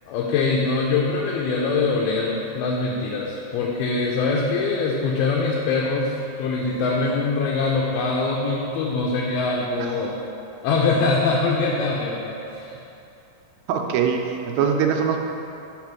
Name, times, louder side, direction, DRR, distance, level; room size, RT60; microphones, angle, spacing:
voice 1, 0.1-10.2 10.6-12.7, left 3 dB, 90° left, -2 dB, 2.5 m, -23 dB
voice 2, 13.7-15.2, right 7 dB, 80° right, 3 dB, 2.3 m, -22 dB
5.0 x 5.0 x 5.9 m, 2.9 s
omnidirectional pair, 4.2 m